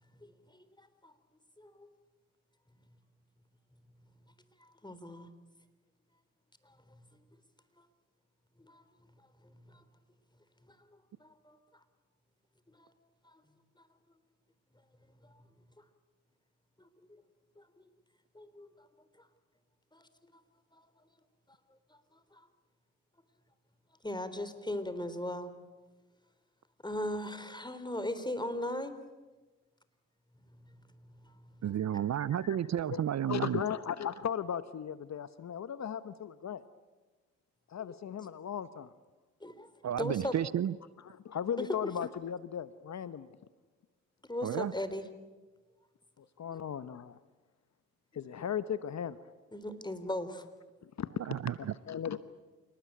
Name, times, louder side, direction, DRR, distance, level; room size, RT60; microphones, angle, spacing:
voice 1, 0.2-1.1 1.6-1.9 4.8-5.3 8.6-8.8 9.7-9.8 11.2-11.6 12.8-12.9 17.6-17.7 18.4-18.9 19.9-20.0 22.3-22.4 24.0-25.5 26.8-29.0 39.4-39.7 40.0-40.4 41.6-41.7 44.3-45.0 46.5-46.6 49.5-50.4, left 1 dB, 10° left, 3.7 m, -38 dB
voice 2, 31.6-33.6 39.8-40.8 44.4-44.7 51.2-51.7, right 10 dB, 50° right, 0.7 m, -32 dB
voice 3, 32.9-36.6 37.7-38.9 41.0-43.3 46.2-47.2 48.1-49.2 50.8-52.2, left 8 dB, 50° left, 1.0 m, -37 dB
28.0 x 19.5 x 9.3 m
hypercardioid pair, 45°, 35 cm